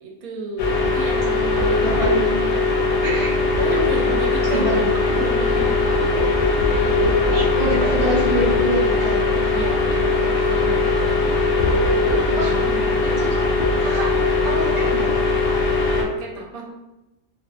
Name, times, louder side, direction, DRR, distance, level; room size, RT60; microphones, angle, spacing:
voice 1, 0.0-2.0 3.6-6.0 6.8-7.3 7.8-8.4 9.5-11.2 12.2-13.1 16.0-16.6, right 1 dB, 85° right, 0 dB, 1.0 m, -32 dB
sound 1, 0.6-16.0, left 3 dB, 65° left, 0.8 m, -20 dB
voice 2, 1.8-2.2 3.0-3.4 4.5-4.9 7.3-9.2 12.3-12.5 13.0-13.4 13.8-14.1 14.4-15.1, right 1 dB, 45° right, -9 dB, 0.3 m, -25 dB
2.5 x 2.2 x 2.3 m, 0.98 s
omnidirectional pair, 1.5 m